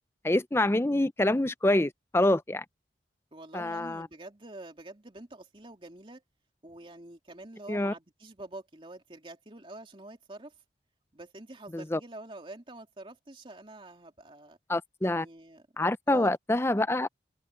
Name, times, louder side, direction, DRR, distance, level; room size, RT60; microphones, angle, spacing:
voice 1, 0.2-2.6 3.5-4.1 7.7-7.9 11.7-12.0 14.7-15.3 15.8-17.1, left 1 dB, 15° left, 0.5 m, -26 dB
voice 2, 3.3-6.2 6.6-10.6 11.1-14.6 15.0-15.7 16.1-16.4, right 2 dB, 30° right, 2.7 m, -46 dB
head